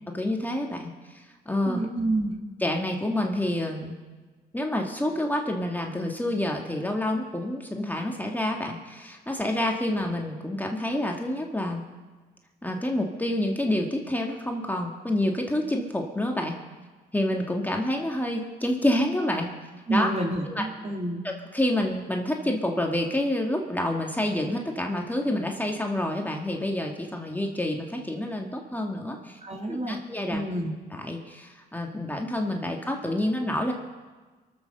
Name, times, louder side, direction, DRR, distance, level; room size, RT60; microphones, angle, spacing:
voice 1, 0.1-0.9 1.5-1.8 2.6-4.0 4.5-11.8 12.6-16.6 17.1-19.5 19.9-20.1 20.5-20.6 21.2-29.4 29.7-30.4 30.9-33.7, left 1 dB, 10° left, 1 dB, 1.9 m, -28 dB
voice 2, 1.7-2.4 19.9-21.2 29.4-30.0 30.3-30.7, right 1 dB, 35° right, 1 dB, 3.1 m, -28 dB
23.5 x 7.9 x 6.7 m, 1.3 s
supercardioid pair, 60°, 18 cm